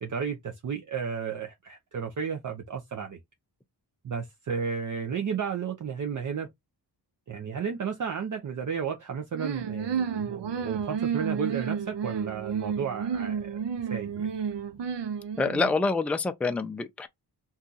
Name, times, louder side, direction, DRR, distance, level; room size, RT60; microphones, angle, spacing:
voice 1, 0.0-3.2 4.0-6.5 7.3-13.6 13.9-14.3, right 6 dB, 50° right, 0.6 m, -33 dB
sound 1, 9.3-15.8, right 7 dB, 90° right, 0.6 m, -31 dB
voice 2, 15.4-17.1, left 3 dB, 5° left, 0.3 m, -26 dB
2.7 x 2.3 x 3.8 m
wide cardioid pair, 125°, 41 cm